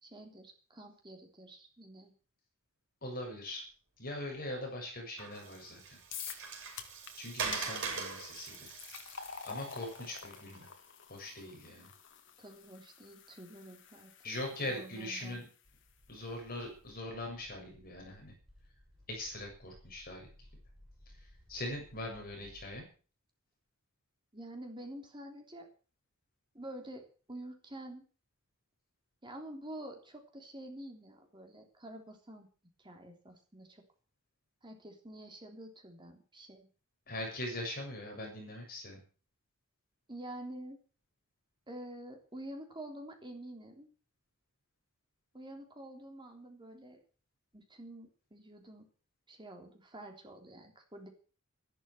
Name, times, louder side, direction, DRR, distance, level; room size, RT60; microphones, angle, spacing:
voice 1, 0.0-2.1 12.4-14.1 14.6-15.4 24.3-25.7 26.5-28.0 29.2-32.5 32.8-33.8 34.6-36.7 40.1-40.8 41.7-43.9 45.3-47.0 47.5-48.9 49.3-51.1, right 1 dB, 20° right, 3 dB, 3.4 m, -48 dB
voice 2, 3.0-3.6 4.0-6.0 7.2-8.7 9.4-10.7 11.1-11.9 14.2-15.5 16.1-18.3 19.1-20.3 21.5-22.9 37.1-39.0, left 1 dB, 45° left, 0 dB, 7.0 m, -41 dB
Water, 5.2-10.6, right 5 dB, 55° right, 6.2 m, -42 dB
sound 1, 6.1-6.5 6.8-7.1 7.5-7.6 8.3-15.5, left 7 dB, 60° left, 2.1 m, -48 dB
sound 2, 15.6-22.8, left 1 dB, ahead, 6.3 m, -60 dB
13.5 x 12.0 x 7.7 m, 0.39 s
head